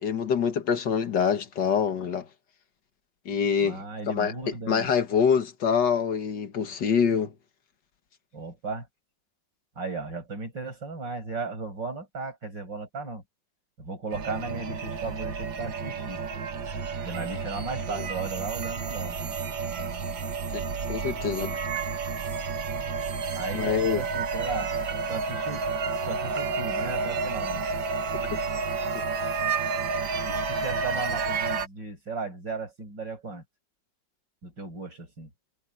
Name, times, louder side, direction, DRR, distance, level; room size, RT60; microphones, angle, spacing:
voice 1, 0.0-2.3 3.3-4.3 4.7-7.3 17.9-18.1 20.5-20.6 20.9-21.6 23.5-24.0, left 6 dB, 70° left, 2.1 m, -25 dB
voice 2, 3.6-4.9 8.3-8.9 9.8-13.2 13.8-16.2 17.0-19.4 23.3-24.7 25.1-25.7 26.1-27.6 30.2-33.4 34.4-35.3, right 3 dB, 70° right, 8.3 m, -36 dB
sound 1, 14.1-31.7, right 5 dB, 85° right, 2.2 m, -30 dB
omnidirectional pair, 2.0 m